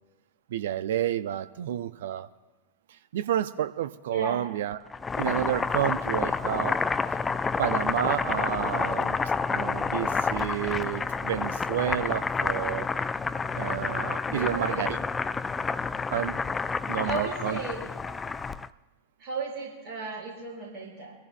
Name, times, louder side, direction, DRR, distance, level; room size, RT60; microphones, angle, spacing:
voice 1, 0.5-2.3 3.1-4.8 5.2-6.8 7.6-9.2 9.5-12.9 13.6-15.0 16.1-16.4 16.9-17.6, right 11 dB, 60° right, 13 dB, 0.5 m, -30 dB
voice 2, 4.1-4.5 14.3-14.9 17.0-17.8 19.2-21.2, right 3 dB, 35° right, -4 dB, 5.5 m, -35 dB
Boiling, 4.9-18.7, left 4 dB, 15° left, 0.3 m, -29 dB
24.5 x 15.0 x 2.2 m, 1.1 s
figure-of-eight pair, 90°, 0 cm